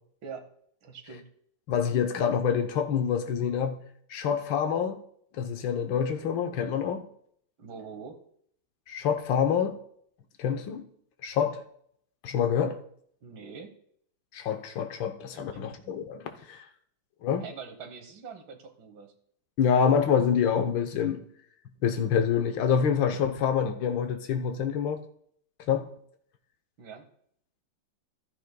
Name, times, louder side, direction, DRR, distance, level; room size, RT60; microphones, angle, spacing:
voice 1, 0.8-1.3 7.6-8.2 13.2-13.8 15.3-15.8 17.4-19.1 26.8-27.1, right 5 dB, 85° right, 2.0 m, -44 dB
voice 2, 1.7-3.8 4.1-5.0 5.4-7.0 8.9-9.7 10.4-10.8 11.2-11.6 12.2-12.8 14.3-16.6 17.2-17.4 19.6-21.2 21.8-25.0 25.7-25.9, left 7 dB, 80° left, 1.6 m, -26 dB
14.5 x 12.0 x 2.2 m
omnidirectional pair, 2.1 m